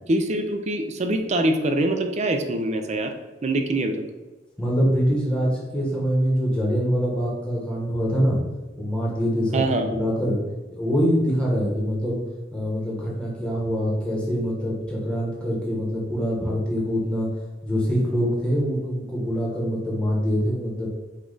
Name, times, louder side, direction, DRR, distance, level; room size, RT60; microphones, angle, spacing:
voice 1, 0.1-3.1 3.4-4.0 9.5-9.9, right 1 dB, 40° right, 6 dB, 0.4 m, -24 dB
voice 2, 4.6-8.4 8.8-10.4 10.7-12.2 12.5-17.3 17.6-20.9, equal, 5° left, -4 dB, 1.1 m, -24 dB
5.2 x 2.4 x 3.8 m, 1.2 s
head